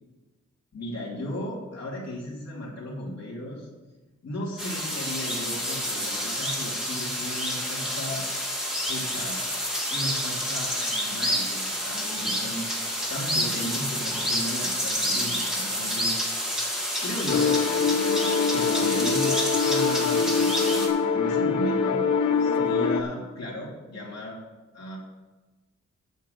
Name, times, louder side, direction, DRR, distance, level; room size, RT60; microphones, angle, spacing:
voice 1, 0.7-3.7 4.2-8.2 8.9-9.4 9.9-12.7 13.1-16.5 17.0-17.5 18.5-20.4 21.1-22.0 22.4-24.4 24.7-25.0, left 1 dB, 60° left, -5 dB, 2.9 m, -35 dB
sound 1, 4.6-20.9, equal, ahead, 2.0 m, -29 dB
sound 2, 17.3-23.0, left 5 dB, 90° left, 0.9 m, -24 dB
8.1 x 7.6 x 7.8 m, 1.2 s
wide cardioid pair, 160°, 29 cm